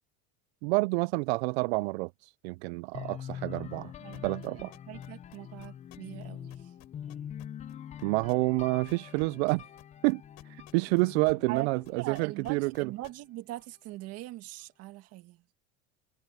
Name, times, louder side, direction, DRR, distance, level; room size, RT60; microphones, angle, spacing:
voice 1, 0.6-3.9 4.2-4.7 8.0-9.6 10.0-12.9, right 26 dB, 80° right, 0.5 m, -29 dB
sound 1, 2.9-12.8, left 9 dB, 20° left, 0.6 m, -44 dB
voice 2, 4.0-6.7 11.5-11.7 12.0-15.4, right 17 dB, 50° right, 1.9 m, -41 dB
sound 2, 4.1-6.2 6.5-11.6 11.8-13.1, left 22 dB, 55° left, 6.2 m, -53 dB
supercardioid pair, 145°, 32 cm